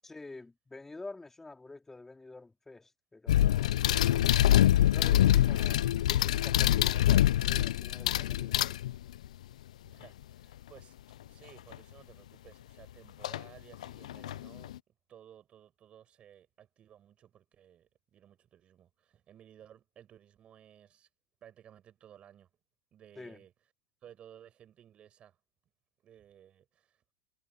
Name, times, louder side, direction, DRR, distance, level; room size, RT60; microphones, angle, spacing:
voice 1, 0.0-8.8 23.2-23.4, left 3 dB, 10° left, 2.6 m, -48 dB
sound 1, 3.3-9.3 11.7-11.8 13.2-13.4 13.8-14.8, left 12 dB, 90° left, 0.4 m, -25 dB
voice 2, 9.8-11.0 11.3-14.7 15.1-21.1 21.4-22.5 22.9-23.5 24.0-25.4 26.0-27.0, right 10 dB, 30° right, 8.0 m, -57 dB
supercardioid pair, 125°, 4 cm